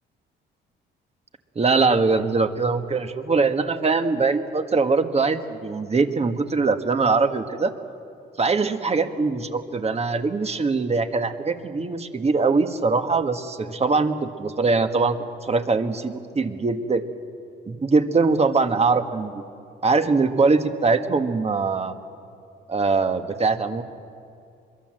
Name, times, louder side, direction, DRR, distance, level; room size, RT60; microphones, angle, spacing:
voice 1, 1.6-7.7 8.4-17.0 17.7-19.4 19.8-21.9 22.7-23.8, right 4 dB, 30° right, 7 dB, 1.6 m, -22 dB
25.0 x 22.0 x 7.8 m, 2.5 s
cardioid pair, 90°, 20 cm